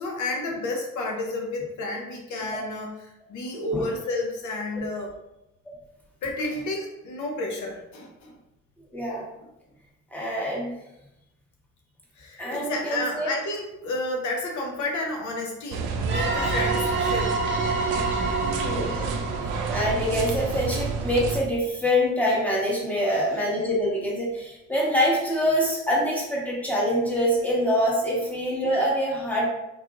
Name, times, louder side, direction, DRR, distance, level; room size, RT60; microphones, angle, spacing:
voice 1, 0.0-5.1 6.2-8.4 12.2-17.3 18.5-18.7 23.0-23.2, left 2 dB, 75° left, 1 dB, 0.7 m, -31 dB
voice 2, 8.9-9.2 10.1-10.7 12.4-13.3 18.6-18.9 19.7-29.5, equal, 5° left, -5 dB, 1.2 m, -25 dB
sound 1, 15.7-21.4, right 4 dB, 85° right, 0.5 m, -29 dB
sound 2, 16.1-20.6, right 3 dB, 35° right, 0.7 m, -28 dB
3.8 x 2.8 x 2.5 m, 0.90 s
cardioid pair, 90°, 30 cm